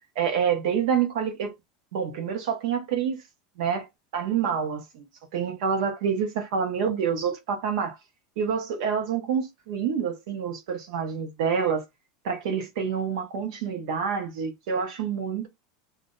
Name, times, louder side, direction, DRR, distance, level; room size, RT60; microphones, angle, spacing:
voice 1, 0.2-1.5 1.9-3.2 3.6-3.9 4.1-5.1 5.3-8.0 8.4-11.8 12.2-15.5, right 7 dB, 60° right, 1.0 m, -27 dB
2.5 x 2.1 x 3.8 m
supercardioid pair, 175°, 4 cm